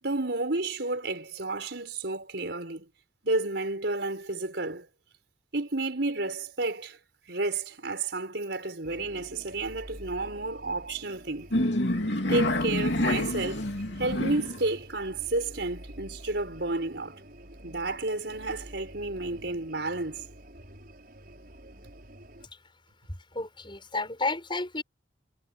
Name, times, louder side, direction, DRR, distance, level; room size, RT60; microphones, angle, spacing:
voice 1, 0.0-2.9 3.2-4.9 5.5-7.0 7.3-11.5 12.3-13.7 14.0-17.2 17.6-20.2, right 2 dB, 70° right, 4.7 m, -31 dB
sound 1, 8.8-22.5, right 1 dB, 50° right, 6.9 m, -48 dB
sound 2, 11.5-14.6, left 1 dB, 70° left, 3.0 m, -27 dB
voice 2, 23.3-24.8, left 3 dB, 25° left, 6.7 m, -31 dB
head